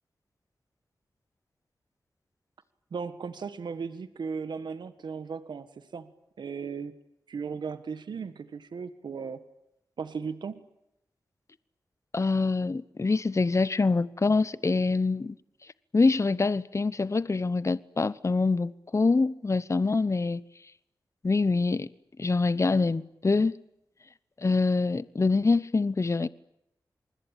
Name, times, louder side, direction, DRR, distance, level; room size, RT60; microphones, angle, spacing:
voice 1, 2.9-6.1 6.4-7.0 7.3-9.4 10.0-10.6, right 5 dB, 80° right, 1.6 m, -36 dB
voice 2, 12.1-15.4 15.9-20.4 21.2-21.9 22.2-23.6 24.4-26.3, left 3 dB, 40° left, 1.0 m, -25 dB
28.0 x 21.0 x 8.9 m
cardioid pair, 50°, 8 cm